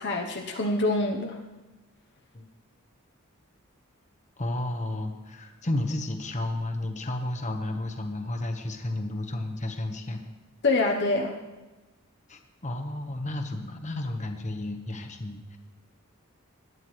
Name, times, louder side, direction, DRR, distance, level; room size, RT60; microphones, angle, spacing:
voice 1, 0.0-1.4 10.6-11.4, left 2 dB, 55° left, 1 dB, 0.9 m, -25 dB
voice 2, 4.4-10.2 12.3-15.6, left 1 dB, 35° left, 5 dB, 1.1 m, -32 dB
20.0 x 9.5 x 3.2 m, 1.2 s
head